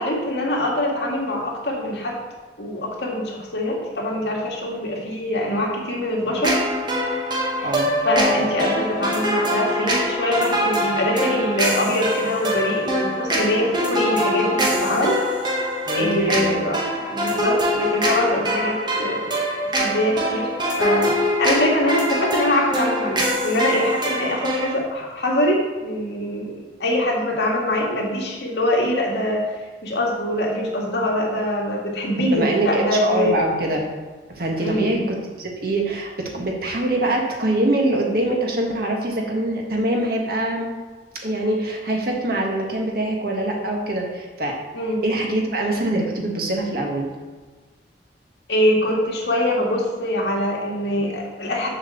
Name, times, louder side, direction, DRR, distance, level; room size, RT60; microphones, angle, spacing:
voice 1, 0.0-2.2 2.6-6.6 7.6-7.7 8.0-15.2 15.9-19.4 19.8-20.5 20.8-26.5 26.8-29.5 29.8-33.4 34.6-35.0 44.7-45.0 48.5-51.7, left 1 dB, 75° left, -2 dB, 2.0 m, -23 dB
sound 1, 6.4-24.8, equal, 25° right, 1.4 m, -23 dB
voice 2, 7.6-7.9 15.9-16.6 32.2-33.9 34.3-40.7 41.2-44.6 45.0-47.1, right 1 dB, 55° right, 0 dB, 1.6 m, -24 dB
7.4 x 4.6 x 7.0 m, 1.3 s
head